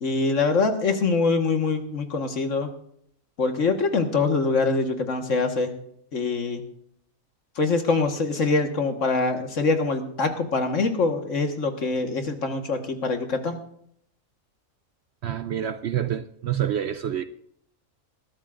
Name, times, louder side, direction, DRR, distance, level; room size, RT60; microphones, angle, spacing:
voice 1, 0.0-2.7 3.4-5.7 6.1-6.6 7.6-13.6, left 3 dB, 60° left, 1.8 m, -24 dB
voice 2, 15.2-17.3, right 10 dB, 60° right, 0.7 m, -27 dB
20.5 x 13.0 x 2.5 m
omnidirectional pair, 1.5 m